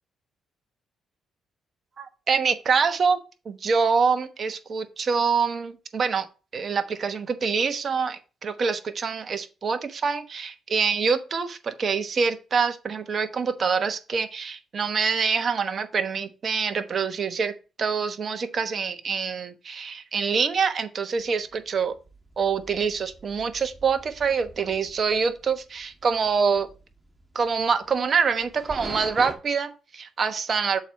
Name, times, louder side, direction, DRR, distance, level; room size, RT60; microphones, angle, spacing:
voice 1, 2.0-3.2 3.4-6.3 6.5-17.5 17.8-21.9 22.4-26.7 27.3-30.8, right 5 dB, 45° right, 1.1 m, -25 dB
sound 1, 21.2-29.4, right 1 dB, 10° right, 1.5 m, -44 dB
7.0 x 4.4 x 4.7 m
cardioid pair, 90°, 0 cm